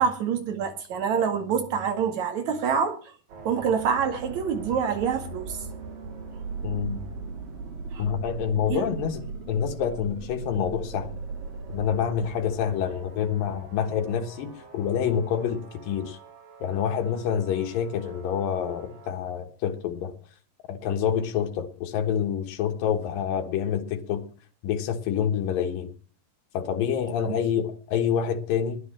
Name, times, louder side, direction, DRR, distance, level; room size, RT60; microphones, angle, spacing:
voice 1, 0.0-3.0 3.4-5.6 7.9-8.0 8.7-8.8 27.2-27.4, right 7 dB, 60° right, 5 dB, 3.2 m, -26 dB
sound 1, 3.3-19.1, right 4 dB, 80° right, 4.8 m, -40 dB
voice 2, 6.6-7.0 8.0-11.2 11.7-15.6 15.9-16.2 16.6-20.1 20.7-24.2 24.6-25.9 26.5-28.8, left 8 dB, 80° left, 4 dB, 3.1 m, -27 dB
12.5 x 10.5 x 7.3 m, 0.42 s
omnidirectional pair, 3.9 m